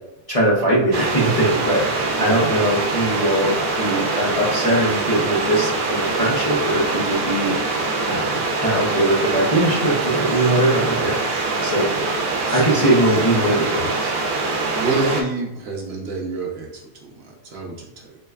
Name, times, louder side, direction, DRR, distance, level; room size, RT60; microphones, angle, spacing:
voice 1, 0.3-11.9 12.5-14.1, right 1 dB, 40° left, -6 dB, 0.5 m, -21 dB
sound 1, 0.9-15.2, right 3 dB, 80° right, 1.0 m, -23 dB
voice 2, 12.5-12.8 14.7-18.2, right 3 dB, 55° right, -1 dB, 0.9 m, -28 dB
4.6 x 2.2 x 2.3 m, 0.92 s
omnidirectional pair, 1.5 m